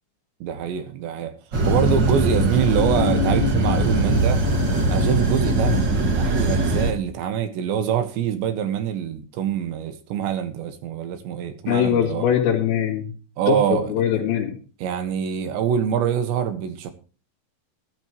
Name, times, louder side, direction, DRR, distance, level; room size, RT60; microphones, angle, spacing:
voice 1, 0.4-1.3 1.7-4.4 4.9-12.3 13.4-14.2 14.8-16.9, right 9 dB, 70° right, 3.4 m, -25 dB
nakano station bad trip, 1.5-6.9, right 1 dB, 55° right, 1.2 m, -21 dB
voice 2, 11.7-13.1 13.5-14.6, left 9 dB, 80° left, 5.3 m, -22 dB
14.5 x 13.5 x 3.0 m
omnidirectional pair, 5.7 m